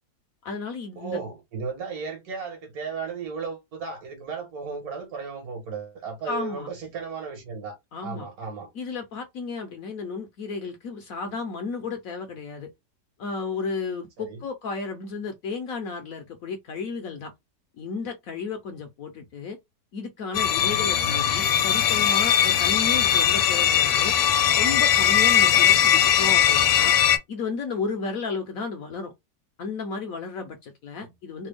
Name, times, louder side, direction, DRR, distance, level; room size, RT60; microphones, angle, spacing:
voice 1, 0.4-1.2 6.3-6.7 7.9-8.3 8.7-12.7 13.2-17.3 17.8-19.6 19.9-24.1 24.6-26.9 27.3-29.1 29.6-31.5, left 4 dB, 65° left, 0.9 m, -33 dB
voice 2, 0.9-8.7 14.2-14.4 21.0-21.3 25.7-25.8 31.0-31.1, right 5 dB, 60° right, 1.5 m, -35 dB
sound 1, 20.3-27.2, left 9 dB, 90° left, 1.2 m, -20 dB
3.3 x 2.2 x 3.4 m
omnidirectional pair, 1.8 m